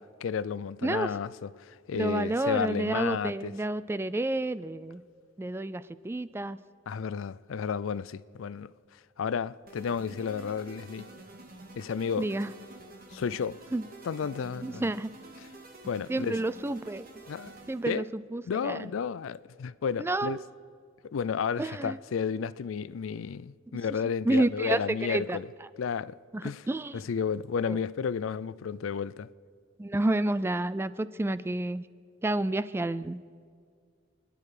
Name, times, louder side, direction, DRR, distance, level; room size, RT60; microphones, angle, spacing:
voice 1, 0.2-3.5 6.9-11.1 11.8-12.3 13.1-13.6 14.0-14.8 15.9-16.4 17.3-17.5 17.9-18.0 18.5-20.4 21.0-25.5 25.8-26.2 26.4-26.7 26.9-29.3, left 6 dB, 75° left, 0.4 m, -32 dB
voice 2, 0.8-1.1 1.9-5.0 5.4-6.6 12.2-12.5 13.7-13.9 14.6-15.1 16.1-17.1 17.7-18.9 20.0-20.4 21.6-22.0 24.2-25.4 26.3-27.0 27.7-27.8 29.8-31.9 32.2-33.2, right 2 dB, 10° right, 0.3 m, -30 dB
sound 1, 9.7-18.0, right 2 dB, 45° right, 2.0 m, -48 dB
27.0 x 10.5 x 4.9 m
head